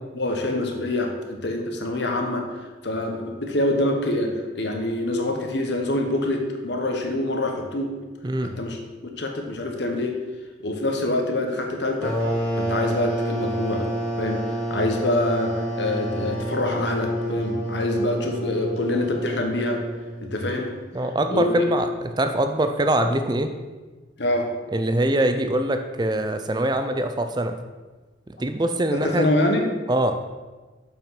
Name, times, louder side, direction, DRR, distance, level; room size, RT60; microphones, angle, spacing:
voice 1, 0.1-7.9 8.4-8.8 9.2-10.2 10.6-12.1 12.6-13.9 14.2-19.8 20.2-20.7 21.3-21.7 24.2-24.5 28.9-29.7, left 1 dB, 65° left, 2 dB, 1.3 m, -25 dB
voice 2, 8.2-8.5 20.9-23.5 24.7-27.6 28.3-29.3 29.9-30.2, right 1 dB, 20° right, 7 dB, 0.6 m, -23 dB
sound 1, 12.0-20.4, right 1 dB, 10° left, 2.8 m, -29 dB
7.3 x 5.7 x 5.8 m, 1.3 s
head